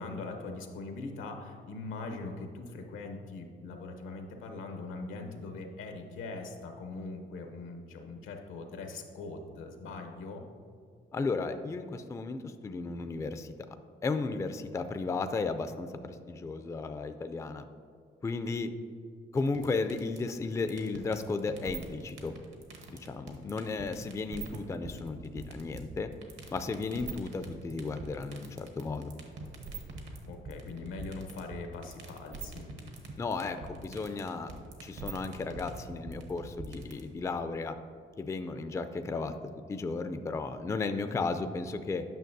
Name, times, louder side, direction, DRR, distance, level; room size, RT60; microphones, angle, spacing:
voice 1, 0.0-10.4 30.2-32.7, left 3 dB, 85° left, 4 dB, 0.8 m, -41 dB
voice 2, 11.1-13.5 14.0-17.7 18.2-18.7 19.3-22.3 23.0-26.1 26.5-29.1 33.2-34.5 34.8-37.8 38.2-39.3 39.7-42.0, left 3 dB, 15° left, 9 dB, 0.3 m, -34 dB
sound 1, 19.4-37.0, right 4 dB, 75° right, 1.1 m, -43 dB
9.1 x 5.7 x 2.6 m, 2.2 s
cardioid pair, 90°, 20 cm